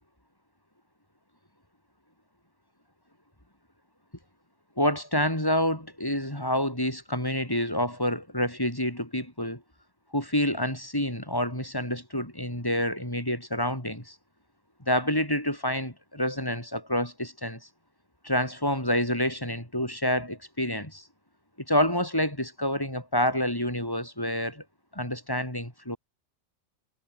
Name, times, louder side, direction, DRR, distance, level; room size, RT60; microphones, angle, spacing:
voice 1, 4.8-9.6 10.1-14.2 14.9-17.6 18.2-21.0 21.7-24.6 24.9-26.0, left 1 dB, 15° left, 6.9 m, -28 dB
omnidirectional pair, 1.5 m